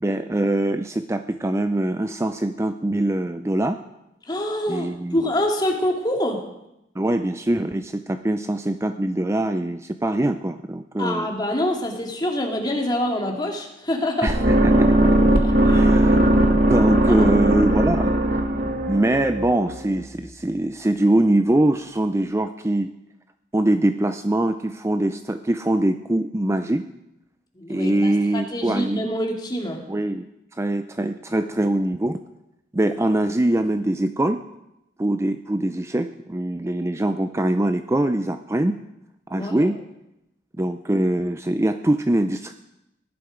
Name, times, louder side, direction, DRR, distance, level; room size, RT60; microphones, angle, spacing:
voice 1, 0.0-3.8 4.7-5.2 7.0-11.3 14.2-15.2 15.7-18.1 18.9-22.9 23.5-26.9 27.7-29.0 29.9-30.2 30.5-32.2 32.7-34.4 35.0-38.8 39.3-39.8 40.6-42.5, right 1 dB, 15° right, 9 dB, 0.5 m, -23 dB
voice 2, 4.3-6.4 11.0-14.4 15.6-15.9 17.1-17.3 27.6-29.8 39.3-39.7, left 1 dB, 25° left, 1 dB, 2.3 m, -26 dB
sound 1, 14.3-20.3, right 1 dB, 55° right, 1.7 m, -19 dB
17.5 x 11.5 x 5.1 m, 0.86 s
head